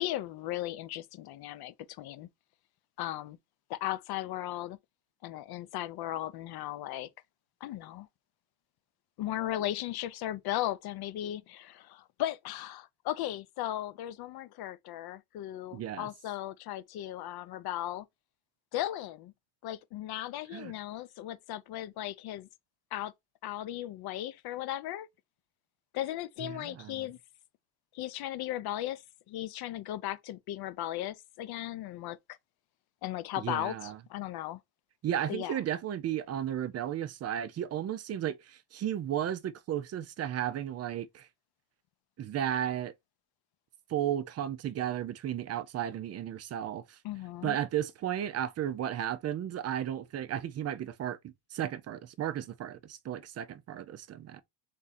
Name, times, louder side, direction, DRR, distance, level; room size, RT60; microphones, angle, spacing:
voice 1, 0.0-2.3 3.0-3.4 3.7-4.8 5.2-7.1 7.6-8.1 9.2-18.1 18.7-19.3 19.6-22.5 22.9-23.1 23.4-25.1 25.9-27.2 27.9-32.2 33.0-34.6 35.3-35.6 47.0-47.6, left 13 dB, 55° left, 0.6 m, -36 dB
voice 2, 15.7-16.1 20.5-20.7 26.4-27.0 33.4-34.0 35.0-41.3 42.2-42.9 43.9-47.0 47.4-54.4, right 10 dB, 35° right, 0.5 m, -34 dB
3.6 x 2.8 x 4.1 m
cardioid pair, 130°, 46 cm